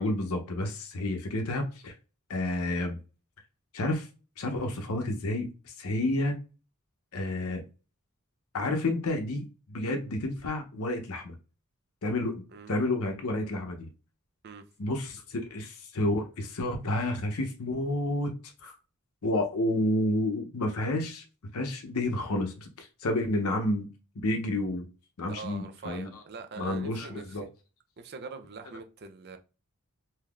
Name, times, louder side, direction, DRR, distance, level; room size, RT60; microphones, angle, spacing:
voice 1, 0.0-1.9 2.3-3.0 3.7-4.1 4.4-6.4 7.1-7.6 8.5-11.4 12.0-13.9 14.8-18.3 18.6-18.7 19.2-21.2 21.5-23.9 24.2-24.9 25.2-26.2 26.6-27.5, left 1 dB, 75° left, 0.7 m, -30 dB
voice 2, 12.5-12.9 14.4-14.6 25.3-27.2 28.0-29.4, right 4 dB, 50° right, 0.5 m, -43 dB
3.5 x 2.7 x 2.3 m
head